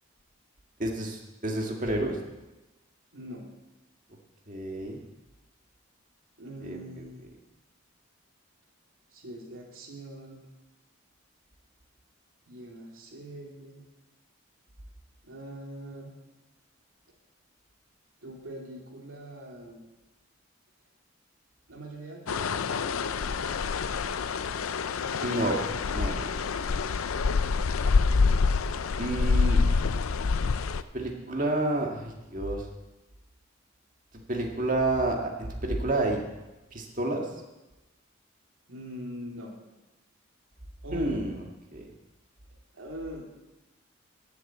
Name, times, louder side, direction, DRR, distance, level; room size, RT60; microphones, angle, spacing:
voice 1, 0.8-2.2 4.5-5.0 6.6-6.8 25.2-25.6 25.9-26.7 29.0-29.6 30.9-32.7 34.1-36.2 36.7-37.3 40.9-41.3 41.7-41.9, right 2 dB, 40° right, 1 dB, 2.0 m, -29 dB
voice 2, 3.1-3.5 6.4-7.3 9.1-10.4 12.4-13.9 15.2-16.1 18.2-19.8 21.7-23.9 27.9-28.4 38.7-39.5 40.8-41.2 42.7-43.3, right 1 dB, 80° right, -1 dB, 2.9 m, -43 dB
sound 1, 22.3-30.8, left 4 dB, 90° left, 0.5 m, -26 dB
13.0 x 7.3 x 8.1 m, 1.0 s
head